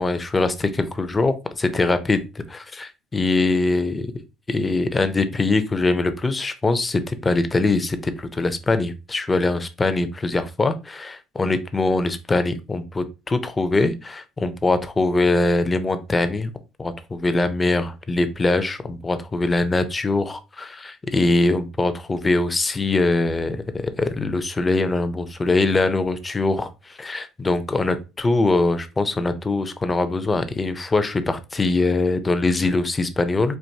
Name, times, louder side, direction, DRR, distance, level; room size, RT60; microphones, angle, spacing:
voice 1, 0.0-2.2 2.5-4.0 4.5-16.5 16.8-33.6, left 3 dB, 20° left, 10 dB, 0.4 m, -22 dB
4.5 x 2.6 x 2.7 m, 0.28 s
cardioid pair, 135°, 0 cm